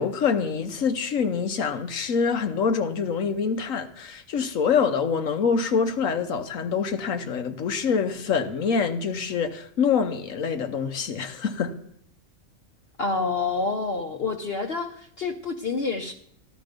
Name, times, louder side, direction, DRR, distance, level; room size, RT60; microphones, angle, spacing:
voice 1, 0.0-11.7, left 6 dB, 80° left, 1.4 m, -25 dB
voice 2, 13.0-16.1, left 4 dB, 50° left, 1.1 m, -28 dB
14.0 x 11.5 x 5.2 m
omnidirectional pair, 1.4 m